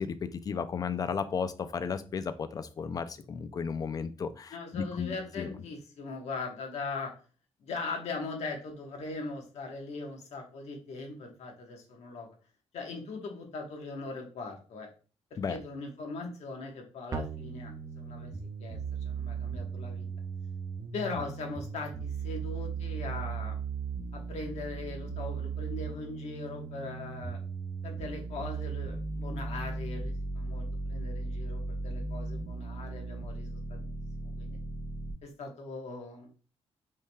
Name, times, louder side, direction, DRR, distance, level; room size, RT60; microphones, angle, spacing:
voice 1, 0.0-5.5 15.4-15.6, left 6 dB, 35° left, 11 dB, 0.4 m, -34 dB
voice 2, 4.5-7.1 7.6-12.3 12.7-14.9 15.3-18.3 18.6-18.8 19.0-20.1 20.9-23.6 24.1-27.4 27.8-33.8 34.2-34.6 35.2-36.3, left 3 dB, 90° left, 2 dB, 1.2 m, -40 dB
sound 1, 17.1-35.1, right 4 dB, 35° right, 0.5 m, -37 dB
5.6 x 3.3 x 2.3 m, 0.37 s
wide cardioid pair, 165°, 11 cm